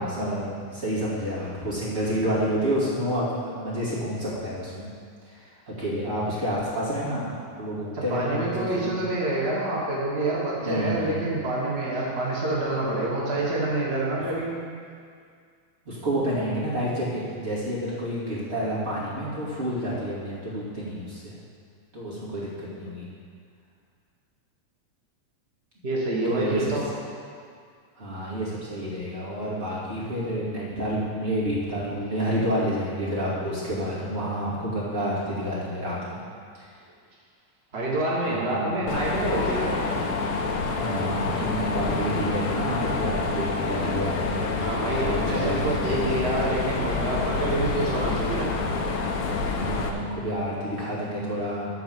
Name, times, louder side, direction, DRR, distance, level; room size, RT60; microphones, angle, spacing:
voice 1, 0.0-4.9 5.3-8.9 10.6-11.2 15.9-21.3 21.9-23.1 26.2-26.7 28.0-36.2 38.3-38.7 40.7-44.5 44.8-45.9 49.6-51.7, equal, 25° right, -8 dB, 2.3 m, -29 dB
voice 2, 7.9-14.5 25.8-26.8 37.7-39.8 44.4-48.5, right 2 dB, 80° right, -4 dB, 0.5 m, -27 dB
Mechanisms, 38.9-49.9, left 4 dB, 70° left, 1.4 m, -27 dB
11.5 x 4.1 x 7.5 m, 2.2 s
omnidirectional pair, 3.4 m